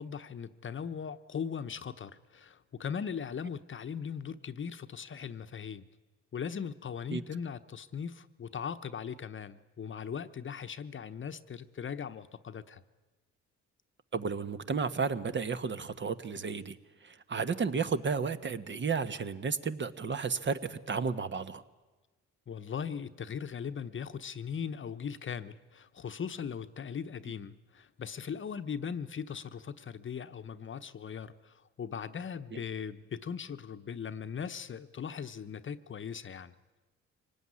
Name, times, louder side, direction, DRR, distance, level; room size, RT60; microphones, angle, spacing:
voice 1, 0.0-5.9 6.3-12.8 22.5-36.5, left 7 dB, 40° left, 11 dB, 1.0 m, -39 dB
voice 2, 14.1-16.8 17.0-21.6 32.5-32.6, right 5 dB, 40° right, 11 dB, 1.2 m, -33 dB
24.0 x 18.5 x 9.8 m, 1.2 s
cardioid pair, 90°, 30 cm